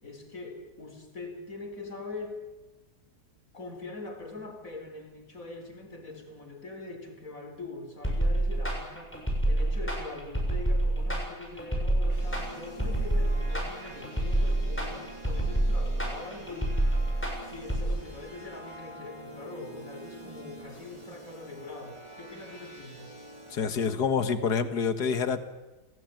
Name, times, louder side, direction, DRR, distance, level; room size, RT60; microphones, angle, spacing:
voice 1, 0.0-2.4 3.5-16.9 17.4-23.2, left 2 dB, 55° left, 5 dB, 4.6 m, -43 dB
sound 1, 8.0-17.9, right 1 dB, 5° left, 7.0 m, -27 dB
sound 2, 12.1-23.5, equal, 20° right, 5.8 m, -47 dB
voice 2, 23.5-25.4, left 6 dB, 90° left, 10 dB, 2.2 m, -27 dB
27.5 x 18.0 x 9.3 m, 1.1 s
omnidirectional pair, 1.7 m